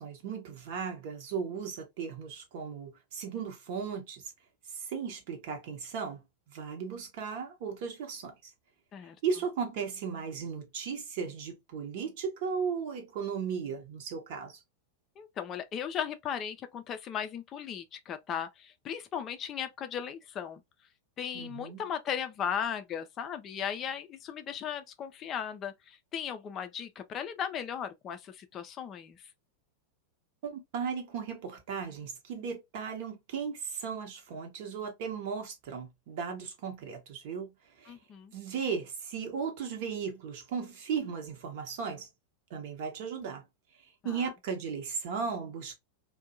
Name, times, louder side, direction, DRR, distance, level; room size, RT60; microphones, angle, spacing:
voice 1, 0.0-4.3 4.7-6.2 6.5-8.5 9.2-14.6 21.3-21.8 30.4-38.0 38.3-42.1 42.5-43.4 44.0-45.8, right 6 dB, 50° right, 0.8 m, -36 dB
voice 2, 15.2-20.6 21.2-29.2 37.9-38.3, left 8 dB, 30° left, 0.4 m, -37 dB
2.6 x 2.1 x 2.5 m
figure-of-eight pair, 90°, 0 cm